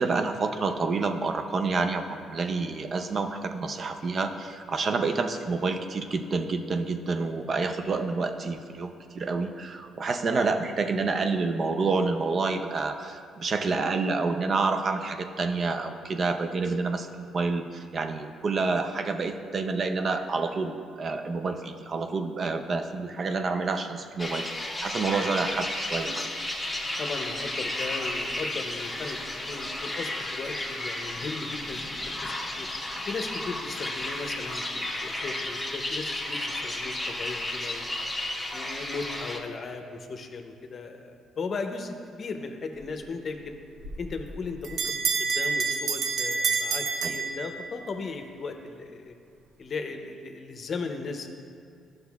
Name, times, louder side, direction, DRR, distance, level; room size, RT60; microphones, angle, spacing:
voice 1, 0.0-26.2 47.0-47.2, right 4 dB, 45° right, 7 dB, 0.5 m, -28 dB
sound 1, 24.2-39.4, left 1 dB, 10° left, 1.0 m, -33 dB
voice 2, 26.7-32.7 33.1-37.9 38.5-43.5 44.0-49.1 49.6-51.3, left 4 dB, 45° left, 5 dB, 0.6 m, -37 dB
Bell, 43.8-47.9, right 5 dB, 70° right, 0.8 m, -28 dB
11.5 x 6.5 x 2.3 m, 2.4 s
cardioid pair, 85°, 0 cm